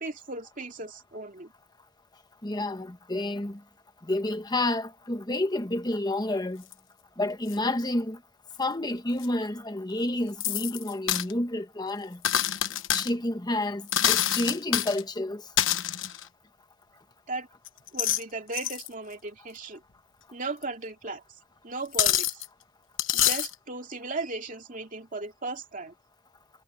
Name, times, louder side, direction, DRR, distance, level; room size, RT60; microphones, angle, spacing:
voice 1, 0.0-1.5 17.3-17.5 17.9-19.8 20.3-21.2 21.6-22.4 23.1-25.9, right 3 dB, 40° right, 2.6 m, -36 dB
voice 2, 2.4-3.6 4.0-6.6 7.2-8.2 8.6-12.2 12.9-15.4, left 1 dB, 20° left, 1.3 m, -29 dB
sound 1, 6.7-6.8 7.5-7.6 9.2-9.3 10.4-11.3 12.2-13.1 13.9-15.0 15.6-16.2 17.7-18.2 18.5-18.9 20.6-20.7 21.9-22.5 23.0-23.5, left 11 dB, 65° left, 1.2 m, -26 dB
head